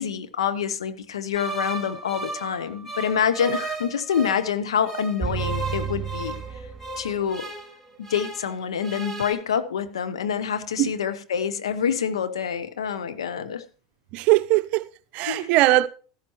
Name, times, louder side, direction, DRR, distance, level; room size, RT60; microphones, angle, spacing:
voice 1, 0.0-6.4 7.0-7.5 8.0-13.6 15.3-15.5, left 8 dB, 80° left, 0.8 m, -26 dB
sound 1, 1.3-4.5 4.8-8.5 8.8-9.3, right 3 dB, 10° left, 4.3 m, -35 dB
sound 2, 5.2-7.3, right 7 dB, 10° right, 2.5 m, -31 dB
voice 2, 14.1-15.9, right 17 dB, 55° right, 0.6 m, -20 dB
13.5 x 12.0 x 3.0 m
hypercardioid pair, 85°, 3 cm